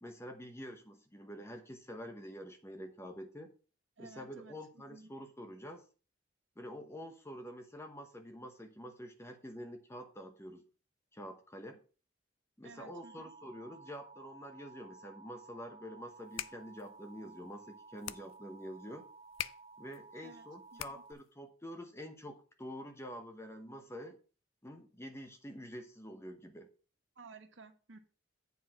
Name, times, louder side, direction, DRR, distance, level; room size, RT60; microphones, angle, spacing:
voice 1, 0.0-3.5 4.0-5.8 6.6-10.6 11.1-11.8 12.6-19.1 19.8-24.2 24.6-26.7, equal, 15° left, 6 dB, 0.9 m, -47 dB
voice 2, 4.0-5.1 12.6-13.3 20.2-20.5 20.7-21.0 27.1-28.0, right 3 dB, 75° right, 7 dB, 1.2 m, -54 dB
Alarm, 12.9-21.1, right 4 dB, 30° right, 0.4 m, -55 dB
sound 1, 16.1-21.3, left 12 dB, 75° left, 0.4 m, -46 dB
8.2 x 4.7 x 5.9 m, 0.36 s
head